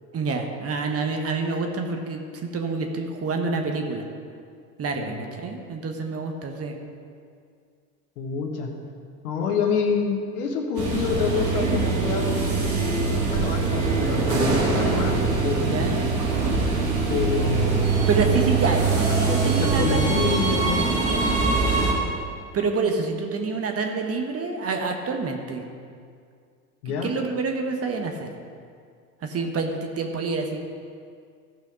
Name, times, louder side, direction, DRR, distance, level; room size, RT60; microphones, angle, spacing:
voice 1, 0.1-4.0 4.8-6.7 15.6-16.2 18.1-20.4 21.1-21.4 22.5-25.6 26.8-28.3 29.2-30.6, right 4 dB, 30° right, 3 dB, 1.3 m, -27 dB
voice 2, 8.2-8.7 9.2-16.2 17.1-18.8 19.1-20.9 26.8-27.1, left 5 dB, 65° left, 2 dB, 1.6 m, -28 dB
sound 1, 10.7-21.9, right 4 dB, 50° right, 3.0 m, -23 dB
15.0 x 5.6 x 5.1 m, 2.2 s
hypercardioid pair, 75°, 47 cm